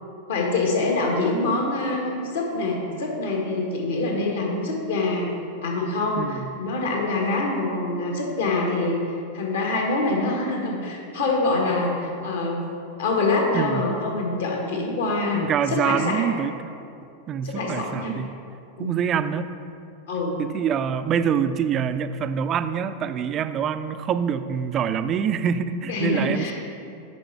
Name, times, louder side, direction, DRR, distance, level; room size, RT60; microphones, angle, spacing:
voice 1, 0.3-5.3 5.6-12.7 13.0-16.2 17.4-18.1 18.8-19.0 20.1-20.4 25.9-26.5, left 2 dB, 60° left, -1 dB, 1.4 m, -25 dB
voice 2, 6.2-6.5 13.5-13.9 15.3-16.7 17.3-18.4 18.8-19.5 20.4-26.5, right 7 dB, 30° right, 11 dB, 0.3 m, -25 dB
7.0 x 5.4 x 4.6 m, 2.5 s
figure-of-eight pair, 90°, 0 cm